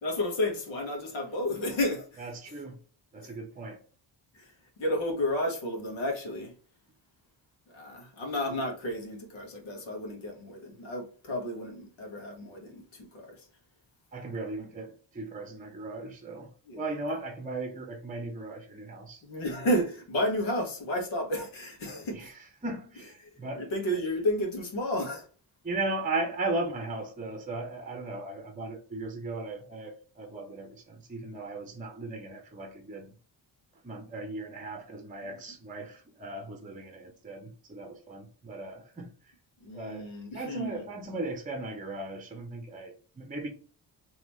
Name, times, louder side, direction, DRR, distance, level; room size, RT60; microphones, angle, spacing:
voice 1, 0.0-2.3 3.2-3.3 4.3-6.5 7.7-13.4 16.7-16.8 19.2-22.3 23.6-25.3 35.2-35.3 39.6-40.8, left 1 dB, 90° left, 1.4 m, -32 dB
voice 2, 2.2-2.8 3.1-3.8 14.1-19.2 22.2-22.3 22.6-23.7 25.6-33.1 33.8-39.1 39.7-40.1 40.3-43.5, right 2 dB, 20° right, 0.6 m, -37 dB
3.7 x 3.0 x 3.0 m
wide cardioid pair, 135°, 45 cm